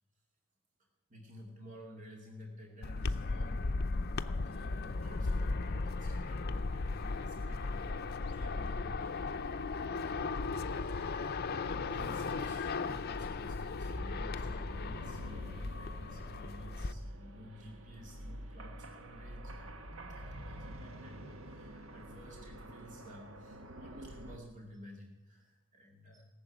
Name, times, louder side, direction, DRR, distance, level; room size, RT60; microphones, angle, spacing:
voice 1, 1.1-3.7 4.4-9.3 9.7-11.1 11.6-19.7 20.1-26.2, equal, 40° right, -1 dB, 2.4 m, -52 dB
sound 1, 2.8-16.9, left 3 dB, 50° left, 0.6 m, -36 dB
sound 2, 13.8-24.4, equal, 85° right, 1.2 m, -47 dB
18.5 x 7.3 x 9.2 m, 1.0 s
head